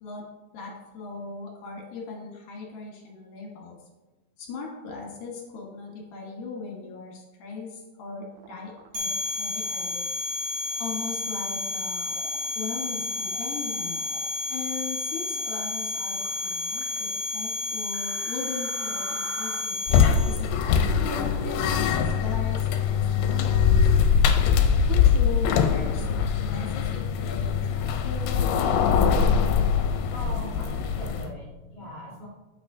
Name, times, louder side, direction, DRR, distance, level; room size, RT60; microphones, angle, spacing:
voice 1, 0.5-3.8 4.4-10.1 10.8-12.2 12.6-14.0 14.5-19.8 20.2-24.3 24.9-28.8, left 4 dB, 65° left, -2 dB, 2.6 m, -39 dB
sound 1, 8.3-8.9 9.6-9.9 10.7-11.2 12.1-12.5 13.0-13.5 13.9-14.3 15.3-15.7 16.1-17.0 17.9-19.6, right 6 dB, 85° right, 1.7 m, -45 dB
sound 2, 8.9-20.3, left 3 dB, 60° right, 1.3 m, -31 dB
sound 3, 19.9-31.3, left 7 dB, 80° left, 2.3 m, -22 dB
voice 2, 29.7-32.3, equal, 25° right, -6 dB, 1.3 m, -41 dB
8.9 x 7.9 x 2.7 m, 1.1 s
omnidirectional pair, 4.1 m